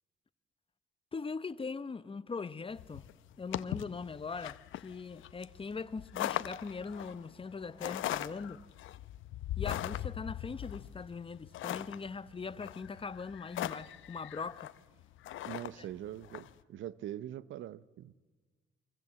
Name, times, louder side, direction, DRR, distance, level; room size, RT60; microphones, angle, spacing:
voice 1, 1.1-3.0 3.4-8.6 9.6-14.7 15.8-15.9, left 4 dB, 25° left, 0.9 m, -41 dB
sound 1, 2.8-16.5, left 13 dB, 80° left, 0.8 m, -40 dB
voice 2, 15.4-18.1, right 12 dB, 75° right, 0.8 m, -43 dB
24.5 x 24.5 x 7.6 m
cardioid pair, 90°, 20 cm